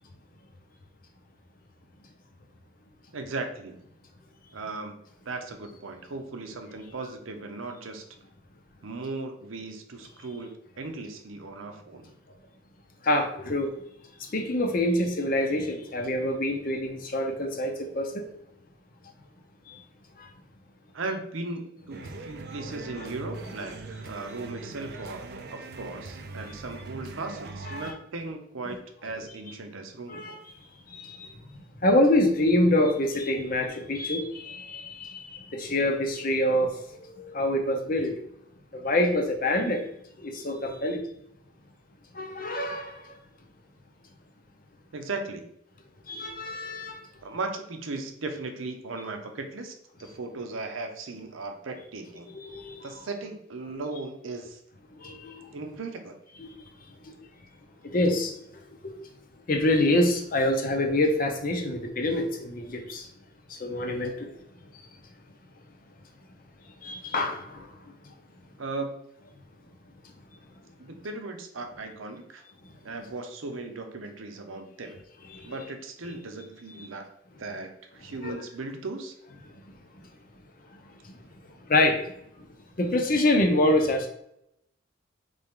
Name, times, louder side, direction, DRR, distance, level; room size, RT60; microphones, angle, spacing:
voice 1, 3.1-3.8 4.5-5.0 5.2-8.0 8.8-12.1 20.9-25.2 25.5-30.4 44.9-45.4 47.2-49.7 50.0-52.3 52.8-54.6 55.5-56.2 68.6-69.0 70.8-72.4 72.8-75.0 75.4-77.1 77.4-79.1, right 3 dB, 90° right, 5 dB, 0.7 m, -37 dB
voice 2, 13.0-13.7 14.2-18.3 19.7-19.8 20.2-20.3 22.0-22.1 23.0-23.1 27.7-27.9 30.1-30.4 30.9-38.2 38.7-39.8 40.2-41.0 42.1-43.2 46.1-47.0 52.3-52.9 54.9-55.5 56.4-56.7 57.0-57.2 57.8-58.9 59.5-63.1 63.5-64.3 64.7-64.8 66.8-67.8 68.0-68.1 75.3-75.6 76.8-76.9 78.2-78.3 81.0-81.2 81.7-82.5 82.8-84.1, left 1 dB, 45° left, 4 dB, 0.7 m, -26 dB
sound 1, 21.9-27.9, right 3 dB, 50° right, 0.4 m, -41 dB
4.1 x 3.4 x 3.6 m, 0.76 s
head